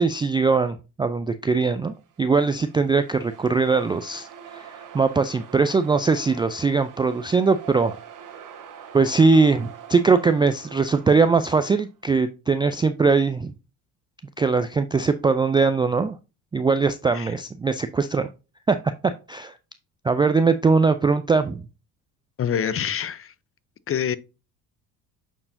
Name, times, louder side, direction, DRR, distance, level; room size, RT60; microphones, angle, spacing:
voice 1, 0.0-4.3 4.5-8.0 8.9-13.5 14.4-16.2 16.5-18.3 18.7-18.8 19.3-19.5 20.0-21.6, right 4 dB, 10° right, 0.3 m, -21 dB
sound 1, 2.0-11.9, right 8 dB, 40° right, 1.5 m, -45 dB
voice 2, 22.4-23.3 23.9-24.2, left 8 dB, 30° left, 0.7 m, -26 dB
8.4 x 4.6 x 2.6 m
hypercardioid pair, 65°, 46 cm